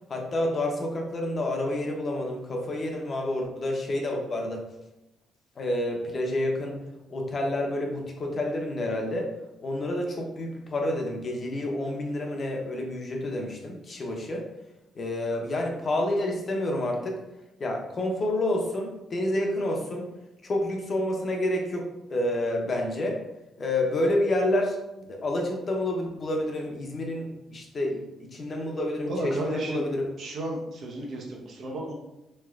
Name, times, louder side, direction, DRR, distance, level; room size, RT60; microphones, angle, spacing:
voice 1, 0.1-4.6 5.6-6.8 7.1-9.3 9.6-14.5 14.9-17.2 17.6-20.1 20.4-23.2 23.6-30.1, left 1 dB, 40° left, 0 dB, 0.7 m, -29 dB
voice 2, 29.1-29.8 30.2-31.9, right 1 dB, 60° right, 0 dB, 0.7 m, -33 dB
3.1 x 2.9 x 2.4 m, 0.95 s
cardioid pair, 90°, 0 cm